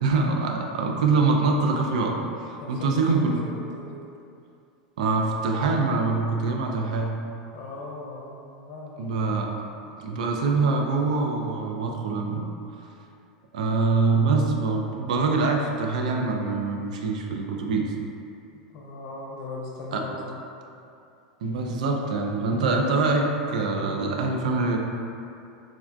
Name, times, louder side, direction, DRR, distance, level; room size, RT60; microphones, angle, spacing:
voice 1, 0.0-2.2 2.7-3.4 5.0-7.1 9.0-9.5 10.0-12.5 13.5-17.9 19.9-20.0 21.4-24.8, right 3 dB, 80° right, 1 dB, 0.3 m, -24 dB
voice 2, 2.6-4.0 7.5-9.2 18.7-20.4, left 2 dB, 55° left, -3 dB, 0.6 m, -39 dB
3.4 x 2.2 x 2.4 m, 2.6 s
hypercardioid pair, 105°, 4 cm